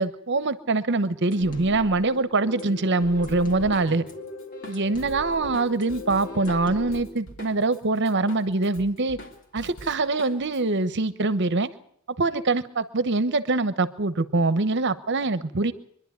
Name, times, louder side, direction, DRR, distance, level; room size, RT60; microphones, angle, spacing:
voice 1, 0.0-4.0 4.7-9.2 9.5-11.7 12.2-15.7, right 3 dB, 55° right, 14 dB, 1.0 m, -24 dB
sound 1, 1.3-7.0, left 3 dB, 35° left, 2.1 m, -39 dB
Drum kit, 3.3-7.8 8.0-10.6, equal, 55° left, 3.1 m, -44 dB
24.0 x 11.5 x 9.5 m, 0.69 s
head